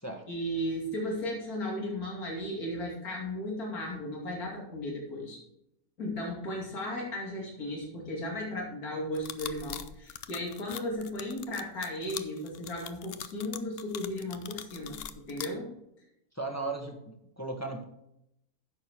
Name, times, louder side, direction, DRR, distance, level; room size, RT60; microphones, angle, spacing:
voice 1, 0.3-5.4 6.0-15.7, left 1 dB, 85° left, -2 dB, 2.9 m, -35 dB
sound 1, 9.2-15.5, left 9 dB, 60° left, 0.6 m, -41 dB
voice 2, 16.3-17.8, right 2 dB, 10° left, 1 dB, 1.2 m, -36 dB
10.0 x 6.7 x 4.6 m, 0.81 s
omnidirectional pair, 1.5 m